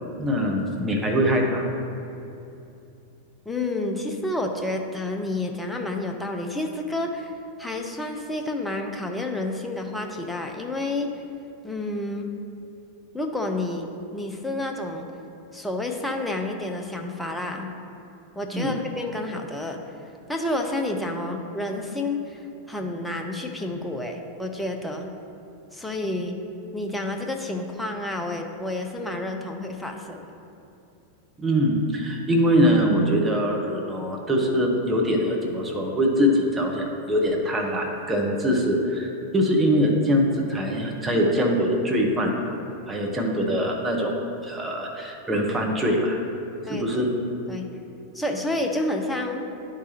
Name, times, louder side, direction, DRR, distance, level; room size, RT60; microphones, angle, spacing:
voice 1, 0.2-1.7 18.5-18.8 31.4-42.6 42.9-44.1 44.4-46.2 46.7-47.1, equal, 10° right, -1 dB, 1.0 m, -23 dB
voice 2, 3.5-7.3 7.6-11.1 11.6-12.3 13.1-15.1 15.5-17.7 18.4-19.8 20.3-22.4 22.7-25.1 25.7-26.4 26.7-30.3 38.5-38.6 46.7-47.0 47.5-47.7 48.1-49.4, left 2 dB, 5° left, 2 dB, 0.6 m, -29 dB
10.0 x 4.7 x 2.9 m, 2.8 s
figure-of-eight pair, 90°, 0 cm